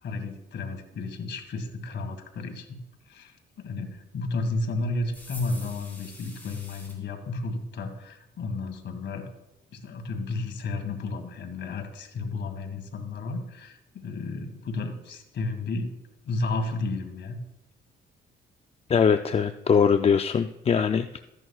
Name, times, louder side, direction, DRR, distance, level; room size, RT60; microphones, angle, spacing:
voice 1, 0.0-2.8 3.1-3.3 3.6-9.3 9.7-15.9 16.2-17.4, left 3 dB, 65° left, 5 dB, 1.8 m, -32 dB
sound 1, 5.1-7.0, left 1 dB, 10° left, 3.6 m, -45 dB
voice 2, 18.9-21.2, left 6 dB, 30° left, 9 dB, 0.4 m, -22 dB
14.0 x 10.5 x 2.4 m, 0.92 s
cardioid pair, 90°, 20 cm